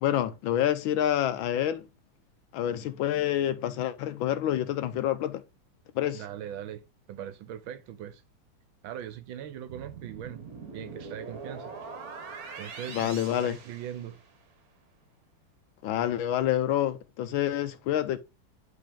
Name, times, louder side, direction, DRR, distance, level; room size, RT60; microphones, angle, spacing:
voice 1, 0.0-1.8 2.5-5.4 6.0-6.2 12.9-13.6 15.8-18.2, left 11 dB, 75° left, 1.3 m, -27 dB
voice 2, 6.1-6.8 7.1-8.2 8.8-10.4 10.7-11.7 12.6-14.2, right 10 dB, 75° right, 1.4 m, -40 dB
sound 1, 9.7-14.4, right 5 dB, 55° right, 1.2 m, -43 dB
9.8 x 3.5 x 3.5 m
omnidirectional pair, 2.4 m